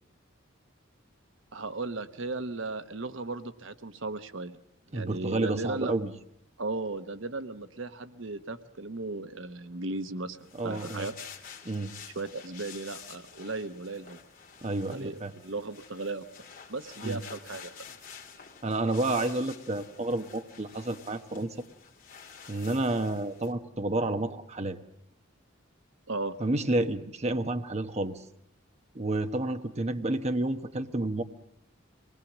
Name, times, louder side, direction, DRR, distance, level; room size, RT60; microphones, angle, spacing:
voice 1, 1.5-4.6 4.9-6.0 6.6-11.1 12.1-14.2 14.8-16.2 16.7-17.7 26.1-26.4, right 3 dB, 70° right, 10 dB, 1.1 m, -36 dB
voice 2, 4.9-6.1 10.6-11.1 11.6-11.9 14.6-15.3 17.0-17.2 18.6-21.6 22.5-24.8 26.4-28.2 28.9-31.2, right 2 dB, 35° right, 7 dB, 1.0 m, -30 dB
sound 1, 10.4-23.5, left 7 dB, 45° left, 2.6 m, -49 dB
25.0 x 20.0 x 7.3 m, 0.76 s
head